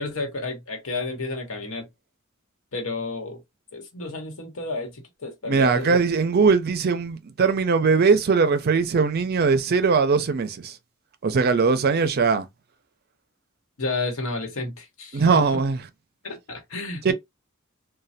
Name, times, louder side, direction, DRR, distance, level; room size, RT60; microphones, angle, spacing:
voice 1, 0.0-1.9 2.7-3.4 3.7-6.0 13.8-15.5 16.2-17.1, left 3 dB, 90° left, 1.1 m, -31 dB
voice 2, 5.5-10.8 11.2-12.5 15.1-15.8 17.0-17.1, right 5 dB, 50° right, 0.5 m, -20 dB
3.2 x 2.2 x 2.7 m
head